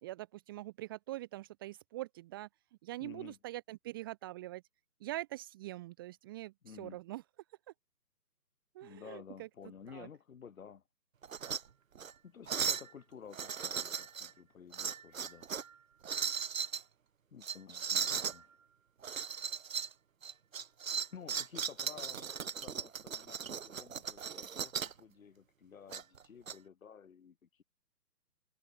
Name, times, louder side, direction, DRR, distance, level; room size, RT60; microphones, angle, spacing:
voice 1, 0.0-2.5 2.8-4.6 5.0-7.2 8.7-9.5 9.9-10.1, right 16 dB, 15° right, 1.0 m, -43 dB
voice 2, 3.0-3.4 6.6-7.0 8.8-10.8 12.2-15.6 17.3-18.6 21.1-27.6, left 7 dB, 55° left, 7.4 m, -53 dB
sound 1, 11.2-11.6 12.0-12.1 12.5-12.9 13.3-14.3 14.7-15.7 16.0-16.8 17.4-18.4 19.0-19.9 20.2-25.0 25.9-26.5, right 7 dB, 50° right, 5.7 m, -37 dB
figure-of-eight pair, 145°, 50 cm